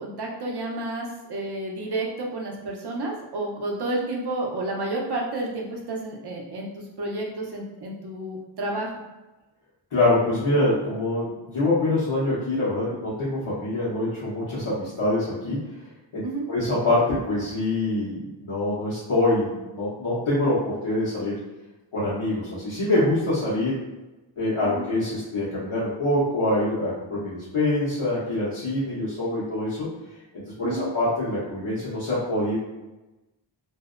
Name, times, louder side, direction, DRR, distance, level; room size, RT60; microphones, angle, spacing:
voice 1, 0.0-8.9 16.2-16.5 24.6-24.8 30.6-30.8, right 2 dB, 55° right, -1 dB, 0.7 m, -31 dB
voice 2, 9.9-15.6 16.1-21.3 21.9-23.7 24.4-29.9 30.3-32.6, left 2 dB, 85° left, -11 dB, 1.0 m, -25 dB
2.6 x 2.0 x 2.4 m, 1.1 s
wide cardioid pair, 55°, 49 cm